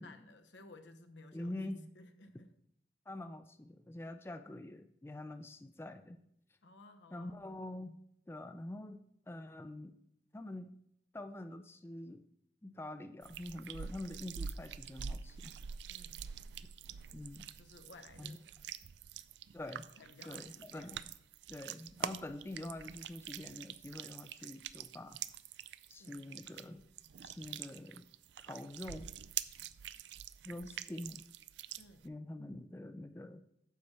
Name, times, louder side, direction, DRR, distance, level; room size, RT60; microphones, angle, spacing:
voice 1, 0.0-2.5 4.0-4.2 6.6-7.5 15.9-16.3 17.6-18.5 20.0-20.9 26.0-26.2 31.8-32.1, left 2 dB, 90° left, 7 dB, 0.9 m, -57 dB
voice 2, 1.3-1.9 3.1-6.2 7.1-8.0 8.3-10.0 10.3-10.7 11.1-12.2 12.6-15.5 17.1-17.5 18.2-18.4 19.5-19.9 20.3-21.1 21.5-25.2 25.9-26.8 27.2-28.1 28.4-29.1 30.4-31.2 32.0-33.4, left 1 dB, 15° left, 9 dB, 0.3 m, -46 dB
sound 1, 13.2-32.1, right 8 dB, 80° right, 0.4 m, -46 dB
9.3 x 4.3 x 6.6 m, 0.74 s
head